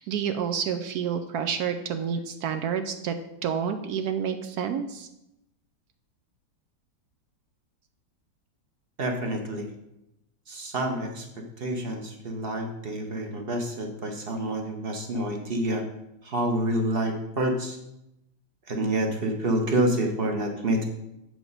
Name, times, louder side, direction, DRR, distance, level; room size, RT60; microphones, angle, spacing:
voice 1, 0.0-3.2 3.4-5.1, right 7 dB, 70° right, 8 dB, 1.0 m, -29 dB
voice 2, 9.0-9.7 10.5-11.2 11.6-15.8 16.3-17.8 18.7-20.9, right 1 dB, 40° right, 3 dB, 1.0 m, -28 dB
7.5 x 5.0 x 5.4 m, 0.86 s
omnidirectional pair, 1.9 m